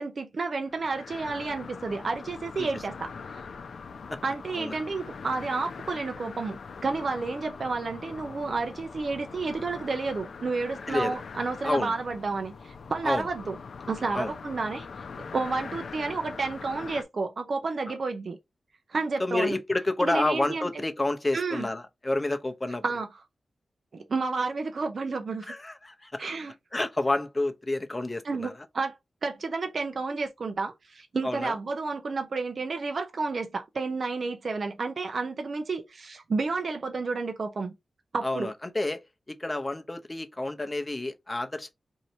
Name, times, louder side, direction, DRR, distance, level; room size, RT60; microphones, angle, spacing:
voice 1, 0.0-3.5 4.2-13.6 13.9-14.9 15.3-18.4 18.9-19.6 20.0-20.7 21.3-21.7 22.8-23.1 23.9-25.5 26.2-26.5 28.2-28.9 29.2-37.7 38.1-38.5, right 4 dB, 60° right, 0.6 m, -31 dB
sound 1, 0.7-17.0, left 5 dB, 75° left, 0.5 m, -42 dB
voice 2, 10.9-11.2 11.6-11.9 13.0-13.3 14.1-14.3 17.9-18.0 19.2-22.8 25.5-26.3 26.7-28.5 31.2-31.5 38.2-41.7, left 2 dB, 25° left, 0.8 m, -29 dB
2.8 x 2.7 x 4.4 m
cardioid pair, 60°, 0 cm